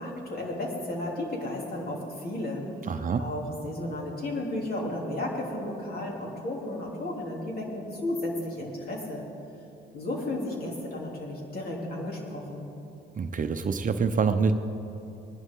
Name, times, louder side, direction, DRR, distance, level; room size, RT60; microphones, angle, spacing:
voice 1, 0.0-2.6 3.2-9.2 9.9-12.6, left 1 dB, 50° left, -2 dB, 3.4 m, -33 dB
voice 2, 2.9-3.3 13.2-14.5, right 5 dB, 40° right, 8 dB, 0.8 m, -26 dB
20.5 x 11.0 x 3.9 m, 2.8 s
cardioid pair, 90°, 20 cm